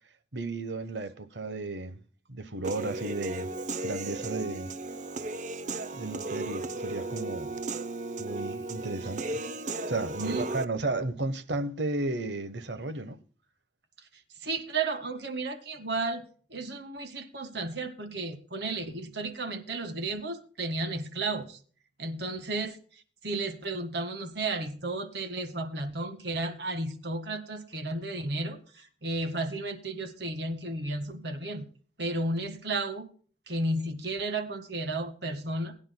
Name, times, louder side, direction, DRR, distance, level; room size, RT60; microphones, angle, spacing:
voice 1, 0.3-2.0 2.3-3.5 3.8-4.7 5.9-7.5 8.2-9.4 9.9-13.2, right 2 dB, 90° right, 1.2 m, -34 dB
Human voice / Piano, 2.6-10.7, right 2 dB, 45° right, 0.7 m, -35 dB
voice 2, 10.1-10.5 14.4-16.2 16.5-21.6 22.0-31.7 32.0-33.1 33.5-35.7, right 2 dB, 70° right, 1.9 m, -33 dB
21.0 x 10.0 x 2.3 m
head